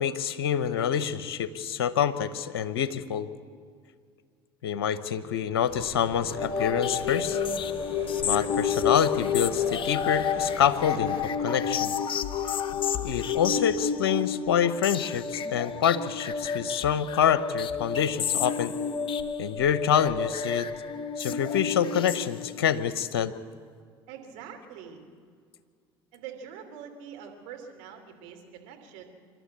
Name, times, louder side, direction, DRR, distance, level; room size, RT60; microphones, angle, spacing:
voice 1, 0.0-3.3 4.6-7.4 8.2-12.0 13.0-18.8 19.4-20.7 21.2-23.3, left 8 dB, 75° left, 14 dB, 0.9 m, -26 dB
sound 1, 5.7-11.3, right 1 dB, 20° right, 4.4 m, -44 dB
sound 2, 6.3-22.7, left 7 dB, 40° left, 1.0 m, -30 dB
voice 2, 24.1-25.0 26.1-29.0, right 7 dB, 65° right, 3 dB, 3.0 m, -44 dB
26.5 x 12.0 x 8.5 m, 2.1 s
hypercardioid pair, 70°, 13 cm